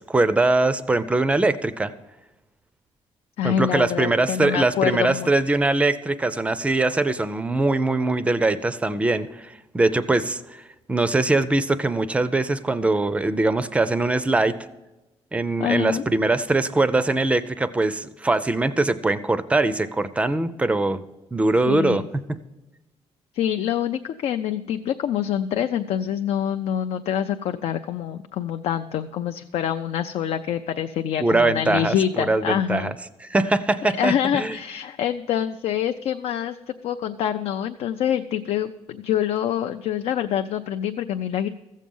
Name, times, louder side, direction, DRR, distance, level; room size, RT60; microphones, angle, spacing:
voice 1, 0.0-1.9 3.4-10.6 10.9-14.6 15.3-21.0 21.3-22.2 31.2-32.9 33.2-34.6, right 2 dB, 10° right, 13 dB, 0.4 m, -22 dB
voice 2, 3.4-5.3 15.6-16.0 21.7-22.1 23.3-32.9 33.8-36.6 36.8-41.5, left 10 dB, 75° left, 7 dB, 0.4 m, -26 dB
15.0 x 7.4 x 5.4 m, 1.0 s
cardioid pair, 175°, 11 cm